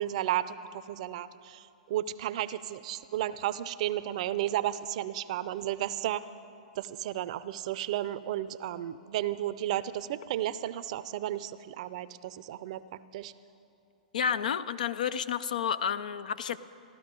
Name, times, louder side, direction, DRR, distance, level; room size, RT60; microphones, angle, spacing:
voice 1, 0.0-6.3 6.8-12.8 13.1-13.3, right 12 dB, 55° right, 15 dB, 0.5 m, -33 dB
voice 2, 14.1-16.6, left 8 dB, 70° left, 15 dB, 0.5 m, -30 dB
15.5 x 12.5 x 5.2 m, 2.6 s
hypercardioid pair, 120°, 4 cm